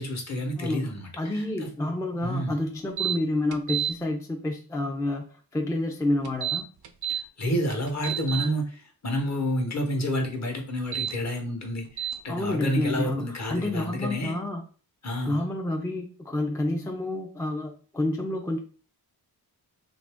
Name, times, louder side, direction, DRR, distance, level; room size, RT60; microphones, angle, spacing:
voice 1, 0.0-1.7 2.2-2.6 7.1-14.4 15.0-15.4, equal, 45° left, 2 dB, 1.0 m, -29 dB
voice 2, 0.6-5.3 5.5-6.7 12.3-14.6 15.3-18.6, left 1 dB, 10° left, 2 dB, 0.4 m, -29 dB
sound 1, 3.0-3.2 3.5-3.9 6.2-7.2 7.7-8.5 10.8-11.1 12.0-12.2, right 10 dB, 75° right, 0.5 m, -29 dB
2.8 x 2.6 x 3.4 m, 0.40 s
wide cardioid pair, 100°, 39 cm